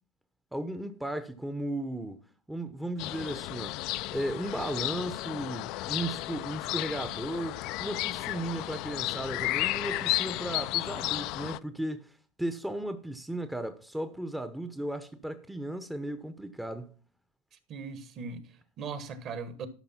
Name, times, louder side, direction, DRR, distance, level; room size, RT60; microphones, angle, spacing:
voice 1, 0.5-2.2 2.5-3.8 4.1-12.1 12.4-16.9, right 1 dB, 5° right, 0.8 m, -35 dB
sound 1, 3.0-11.6, left 18 dB, 55° left, 0.4 m, -33 dB
voice 2, 17.7-19.7, right 5 dB, 40° right, 1.4 m, -39 dB
12.0 x 5.4 x 5.7 m
supercardioid pair, 120°, 0 cm